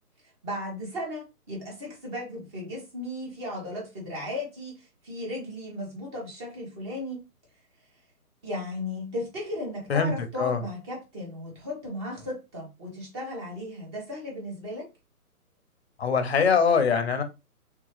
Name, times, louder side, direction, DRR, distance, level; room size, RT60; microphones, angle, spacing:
voice 1, 0.4-7.2 8.4-14.9, left 1 dB, 20° right, 1.2 m, -35 dB
voice 2, 9.9-10.6 16.0-17.2, left 6 dB, 45° left, 0.7 m, -23 dB
3.4 x 2.8 x 3.2 m
hypercardioid pair, 155°, 45 cm